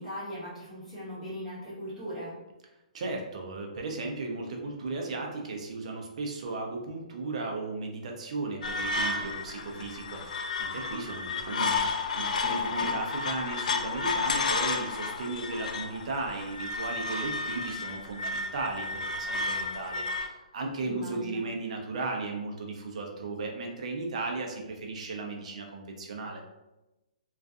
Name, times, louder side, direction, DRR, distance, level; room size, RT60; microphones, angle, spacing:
voice 1, 0.0-2.3 12.4-13.0 20.8-21.4, equal, ahead, -14 dB, 1.3 m, -39 dB
voice 2, 2.9-26.4, right 3 dB, 55° right, 2 dB, 0.5 m, -36 dB
sound 1, 8.6-20.3, left 4 dB, 65° left, 0.3 m, -32 dB
2.5 x 2.4 x 2.3 m, 1.0 s
hypercardioid pair, 160°, 4 cm